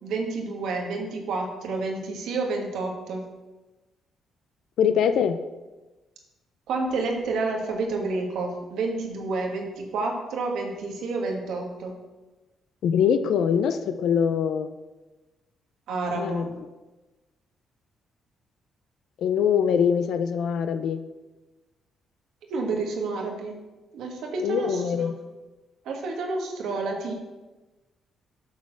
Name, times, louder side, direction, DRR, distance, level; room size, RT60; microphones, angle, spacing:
voice 1, 0.0-3.3 6.7-12.0 15.9-16.5 22.5-23.6 23.9-25.1 25.8-27.1, right 3 dB, 80° right, 1 dB, 1.5 m, -29 dB
voice 2, 4.8-5.4 12.8-14.7 16.1-16.5 19.2-21.0 24.4-25.1, left 7 dB, 75° left, 9 dB, 0.4 m, -23 dB
6.9 x 4.2 x 6.5 m, 1.1 s
cardioid pair, 90°, 0 cm